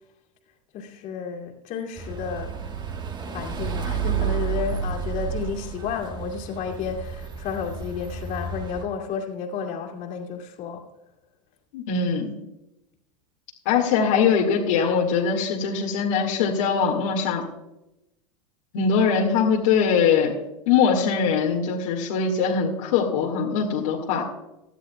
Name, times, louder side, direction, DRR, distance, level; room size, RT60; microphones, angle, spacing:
voice 1, 0.7-2.6 3.3-10.9, left 6 dB, 50° left, 0 dB, 2.4 m, -32 dB
sound 1, 2.0-8.8, right 7 dB, 25° right, 1.3 m, -31 dB
voice 2, 11.7-12.3 13.7-17.4 18.7-20.3 20.7-24.2, left 6 dB, 70° left, -2 dB, 1.9 m, -22 dB
17.5 x 12.5 x 2.3 m, 0.93 s
hypercardioid pair, 100°, 18 cm